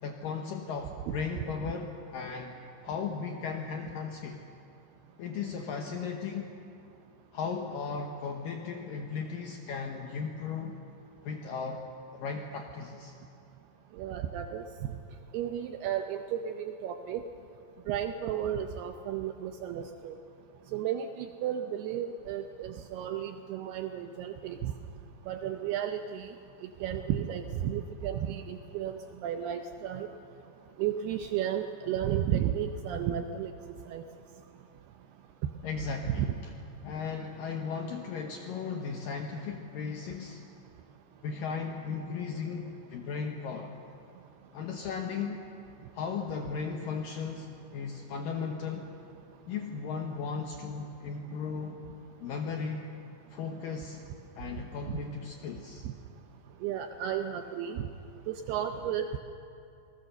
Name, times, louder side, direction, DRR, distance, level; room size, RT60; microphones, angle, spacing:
voice 1, 0.0-2.6 2.8-4.4 5.2-6.5 7.3-10.8 11.2-11.8 12.1-13.1 35.6-36.5 36.8-40.4 41.2-43.7 44.5-45.4 45.9-48.9 49.5-51.8 52.2-52.9 53.3-54.0 54.4-55.9, left 5 dB, 75° left, 3 dB, 2.1 m, -36 dB
voice 2, 14.0-14.7 15.3-17.2 17.9-20.1 20.7-24.7 25.3-26.3 26.8-30.1 30.8-33.5 33.9-34.0 36.1-36.3 54.9-55.0 56.6-57.9 58.3-59.1, right 10 dB, 80° right, 6 dB, 2.3 m, -33 dB
26.5 x 19.5 x 6.8 m, 2.6 s
omnidirectional pair, 5.3 m